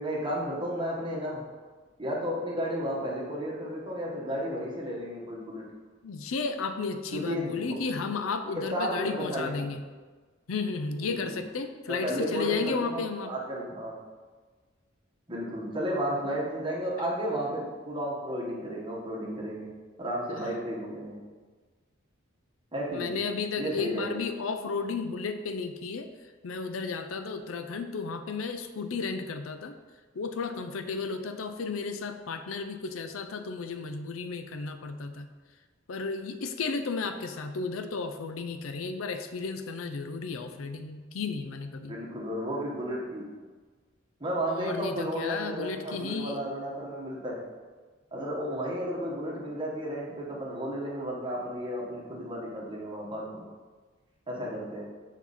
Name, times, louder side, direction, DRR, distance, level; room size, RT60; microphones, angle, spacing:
voice 1, 0.0-1.5 2.0-5.6 7.1-7.8 8.5-9.7 11.0-11.4 11.9-14.0 15.3-19.7 20.0-21.2 22.7-23.2 23.6-24.2 41.9-43.4 44.2-47.5 48.1-53.5 54.3-54.8, equal, 25° right, -3 dB, 1.3 m, -33 dB
voice 2, 6.0-9.8 10.5-13.3 20.3-20.5 22.9-26.1 26.4-29.8 30.1-35.3 35.9-42.0 44.5-46.4, left 4 dB, 85° left, 8 dB, 0.5 m, -33 dB
7.0 x 4.5 x 4.1 m, 1.4 s
head